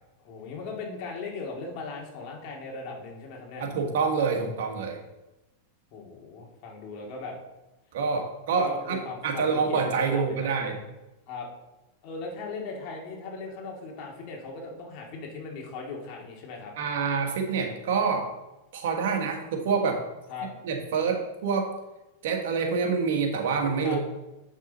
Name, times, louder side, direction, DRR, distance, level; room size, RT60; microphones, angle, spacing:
voice 1, 0.2-3.6 5.9-7.4 8.6-10.5 11.3-11.5 12.0-16.7 20.3-20.5 23.8-24.0, left 4 dB, 50° left, -1 dB, 2.5 m, -38 dB
voice 2, 3.6-5.0 7.9-10.8 16.8-18.3 18.7-20.0 20.6-21.7 22.2-24.0, right 5 dB, 70° right, 3 dB, 1.6 m, -27 dB
8.0 x 6.1 x 4.2 m, 1.0 s
supercardioid pair, 130°, 0 cm